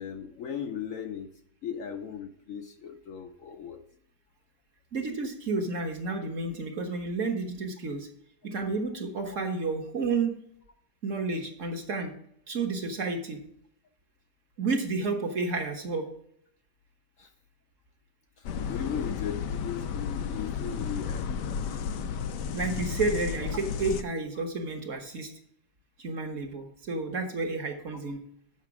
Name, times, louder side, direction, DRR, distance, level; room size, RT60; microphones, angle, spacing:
voice 1, 0.0-1.3 1.6-3.8 17.2-17.3 18.7-21.3 24.4-24.5, left 8 dB, 65° left, 6 dB, 0.9 m, -37 dB
voice 2, 4.9-8.1 8.4-10.4 11.0-12.1 12.5-13.4 14.6-16.1 22.5-25.3 26.0-28.2, right 3 dB, 50° right, 3 dB, 1.5 m, -31 dB
sound 1, 18.4-24.0, left 7 dB, 85° left, 1.3 m, -33 dB
7.3 x 5.8 x 5.9 m, 0.68 s
omnidirectional pair, 1.8 m